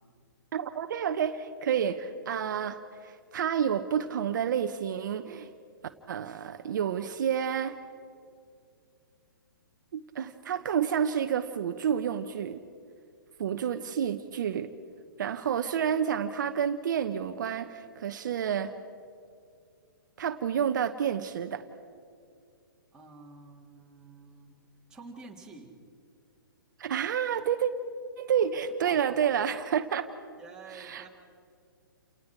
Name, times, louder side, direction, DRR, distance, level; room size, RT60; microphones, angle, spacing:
voice 1, 0.5-5.5 6.1-7.7 9.9-12.6 13.4-14.7 15.2-18.7 20.2-21.6 26.8-27.7 28.2-30.1 30.7-31.1, right 8 dB, 60° right, 8 dB, 1.0 m, -29 dB
voice 2, 22.9-24.6 24.9-25.7 28.8-29.2 30.4-31.1, right 3 dB, 5° right, -3 dB, 3.1 m, -48 dB
30.0 x 18.5 x 4.7 m, 2.3 s
hypercardioid pair, 130°, 12 cm